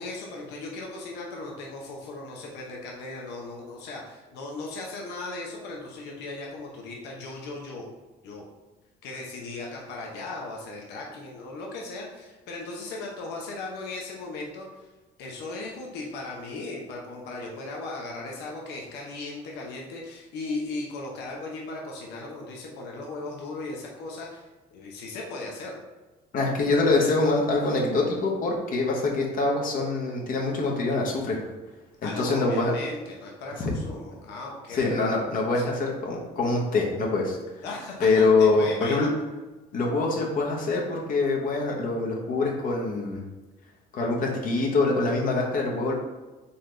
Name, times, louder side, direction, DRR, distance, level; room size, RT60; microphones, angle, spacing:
voice 1, 0.0-7.8 8.2-8.4 9.0-14.9 15.2-25.7 32.0-34.9 35.6-35.7 37.6-38.1 38.4-39.1, left 2 dB, 85° left, -1 dB, 0.9 m, -37 dB
voice 2, 26.3-31.4 32.0-32.7 33.6-33.7 34.7-37.4 38.0-39.1 39.7-43.2 43.9-45.9, left 3 dB, 55° left, -1 dB, 1.1 m, -24 dB
4.2 x 3.9 x 3.3 m, 1.2 s
cardioid pair, 110°, 17 cm